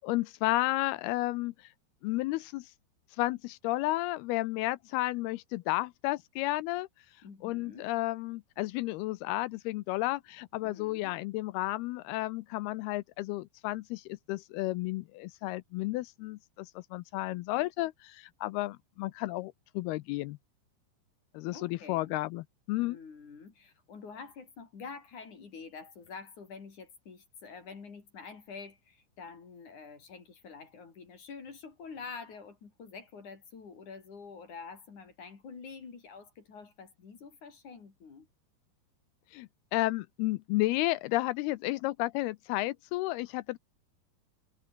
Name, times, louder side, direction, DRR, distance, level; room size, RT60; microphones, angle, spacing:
voice 1, 0.0-1.7 2.0-2.7 3.2-6.9 7.4-20.4 21.3-23.0 39.3-43.6, left 19 dB, 80° left, 2.4 m, -32 dB
voice 2, 7.2-7.9 10.6-11.1 21.5-22.1 22.8-38.3, left 5 dB, 45° left, 5.1 m, -47 dB
omnidirectional pair, 4.8 m